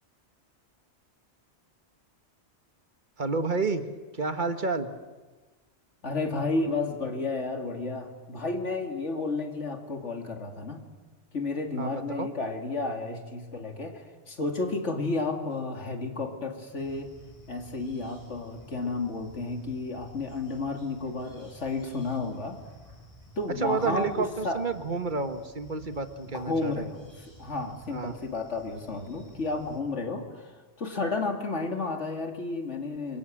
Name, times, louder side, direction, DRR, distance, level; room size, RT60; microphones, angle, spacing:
voice 1, 3.2-3.8 4.1-4.9 11.8-12.3 23.6-26.9 27.9-28.1, right 4 dB, 45° right, 9 dB, 1.4 m, -30 dB
voice 2, 6.0-10.8 11.3-17.1 17.5-22.6 23.4-24.6 26.3-33.2, left 3 dB, 90° left, 4 dB, 2.9 m, -32 dB
sound 1, 16.8-29.8, equal, 15° left, 5.0 m, -53 dB
27.5 x 22.5 x 7.7 m, 1.3 s
omnidirectional pair, 1.2 m